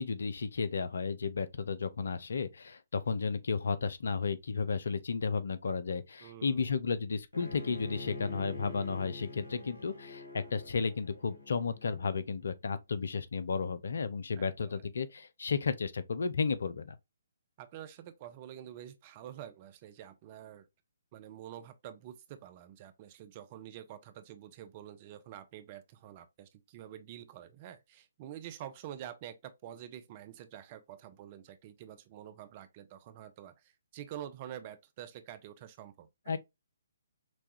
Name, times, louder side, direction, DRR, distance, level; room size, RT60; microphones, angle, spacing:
voice 1, 0.0-17.0 36.3-36.4, left 5 dB, 60° left, 0.6 m, -33 dB
voice 2, 6.2-6.7 14.4-14.8 17.6-20.7 21.1-36.4, right 11 dB, 30° right, 0.6 m, -47 dB
Bowed string instrument, 7.3-12.4, left 2 dB, 75° left, 1.6 m, -46 dB
6.1 x 2.4 x 2.8 m
figure-of-eight pair, 135°, 0 cm